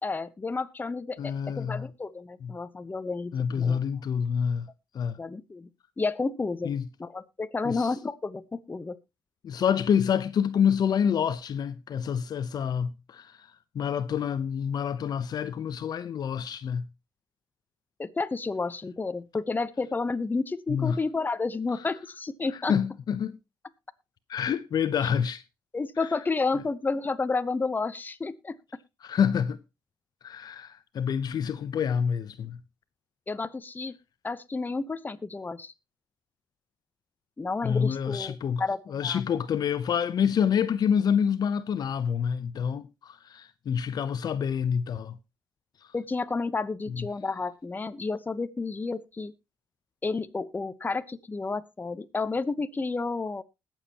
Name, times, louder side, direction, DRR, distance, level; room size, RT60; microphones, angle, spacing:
voice 1, 0.0-3.8 5.2-5.7 6.0-6.7 7.0-9.0 18.0-22.7 25.7-28.6 33.3-33.9 34.2-35.7 37.4-39.2 45.9-49.3 50.0-53.4, left 3 dB, 25° left, 0.9 m, -31 dB
voice 2, 1.2-1.9 2.4-2.5 3.3-4.7 4.9-5.2 6.6-6.9 7.6-7.9 9.4-13.3 13.7-16.9 20.7-21.0 22.7-23.4 24.3-25.4 29.0-29.6 30.2-32.6 37.6-38.6 38.9-45.1 46.9-47.1, left 7 dB, 60° left, 0.7 m, -27 dB
20.5 x 7.4 x 2.9 m
cardioid pair, 90°, 8 cm